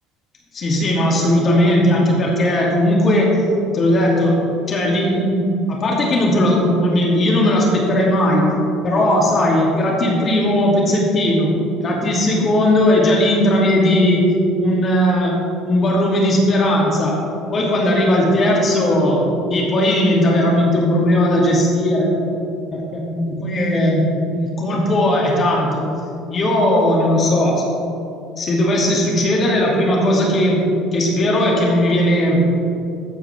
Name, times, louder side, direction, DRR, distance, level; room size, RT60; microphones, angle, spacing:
voice 1, 0.5-3.4 3.7-4.4 4.7-8.4 8.8-11.5 11.8-14.2 14.6-15.4 15.6-17.2 17.5-19.2 19.5-22.1 22.7-24.0 24.3-25.8 26.3-27.6 28.4-32.5, left 1 dB, 40° left, -3 dB, 2.6 m, -17 dB
13.5 x 8.7 x 3.5 m, 2.7 s
hypercardioid pair, 65°, 0 cm